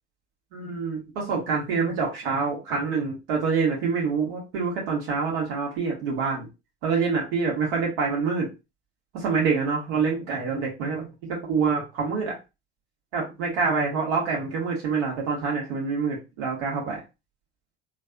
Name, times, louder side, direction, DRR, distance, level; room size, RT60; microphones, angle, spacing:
voice 1, 0.5-6.5 6.8-8.5 9.1-12.4 13.1-17.0, right 5 dB, 60° right, -2 dB, 1.7 m, -26 dB
3.9 x 2.6 x 2.4 m, 0.26 s
figure-of-eight pair, 70°, 34 cm